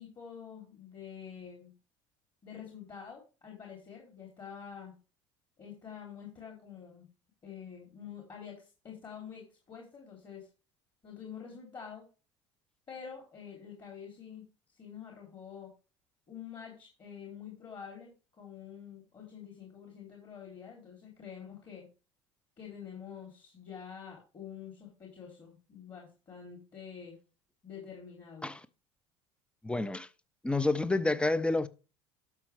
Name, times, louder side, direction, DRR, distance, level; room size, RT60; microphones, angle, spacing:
voice 1, 0.0-1.7 2.4-5.0 5.6-7.1 7.4-10.5 11.0-12.0 12.9-15.7 16.3-21.9 22.6-27.2 27.6-28.5, left 7 dB, 30° left, 3.6 m, -47 dB
voice 2, 29.6-30.1 30.4-31.7, left 2 dB, 5° left, 0.7 m, -29 dB
12.0 x 6.2 x 3.5 m
hypercardioid pair, 70°, 15 cm